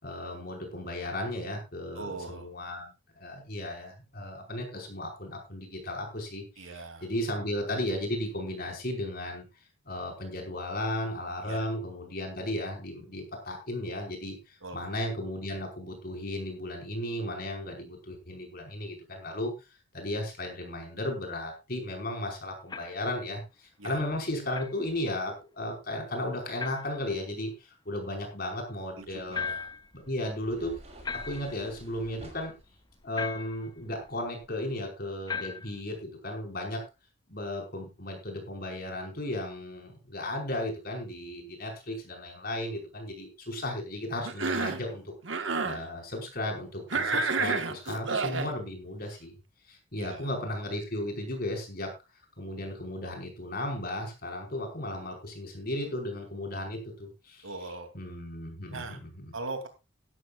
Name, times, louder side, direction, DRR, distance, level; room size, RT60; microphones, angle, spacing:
voice 1, 0.0-9.5 9.9-19.5 19.9-29.5 29.9-30.7 31.1-32.5 33.0-36.8 37.3-49.4 49.6-51.9 52.4-57.5 57.9-59.3, left 1 dB, 50° left, 2 dB, 5.3 m, -35 dB
voice 2, 2.0-2.5 6.6-7.1 11.4-11.7 14.6-14.8 23.8-24.0 28.9-29.7 50.0-50.3 57.4-57.9 58.7-59.0 59.3-59.7, right 3 dB, 90° right, 6 dB, 3.0 m, -40 dB
sound 1, 22.7-23.1 24.5-24.8 26.6-27.0 29.3-29.9 31.0-31.6 33.2-33.7 35.3-35.8, left 5 dB, 20° left, 0.6 m, -37 dB
sound 2, 29.0-34.5, equal, 30° right, 6.5 m, -52 dB
Cough, 44.2-44.8 45.2-45.8 46.9-48.5, right 4 dB, 65° right, 1.6 m, -29 dB
16.0 x 13.0 x 2.5 m, 0.26 s
head